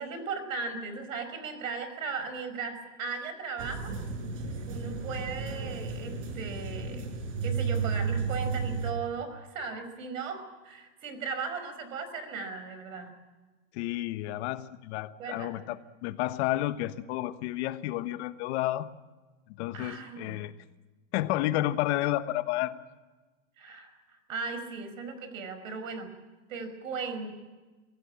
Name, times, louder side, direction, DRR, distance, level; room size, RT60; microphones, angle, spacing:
voice 1, 0.0-4.0 4.7-7.1 7.4-13.1 15.2-15.5 19.7-20.4 23.6-26.1 26.5-27.3, right 4 dB, 85° right, 10 dB, 5.4 m, -37 dB
sound 1, 3.6-8.9, right 5 dB, 70° right, 5.4 m, -33 dB
voice 2, 13.7-18.9 19.6-20.5 21.1-22.7, left 15 dB, 55° left, 12 dB, 1.3 m, -31 dB
25.0 x 16.0 x 8.7 m, 1.3 s
supercardioid pair, 130°, 39 cm